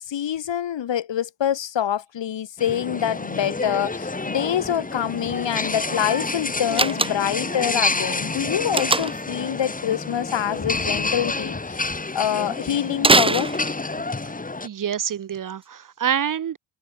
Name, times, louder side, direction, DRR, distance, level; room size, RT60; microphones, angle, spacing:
voice 1, 0.0-11.9 12.1-13.5, left 10 dB, 60° left, 2.6 m, -25 dB
sound 1, 2.6-14.7, left 3 dB, 15° left, 1.6 m, -29 dB
Slam, 6.7-7.5 8.7-9.3 13.0-14.1, right 3 dB, 10° right, 0.7 m, -21 dB
voice 2, 14.6-16.6, right 8 dB, 40° right, 0.8 m, -26 dB
hypercardioid pair, 45°, 49 cm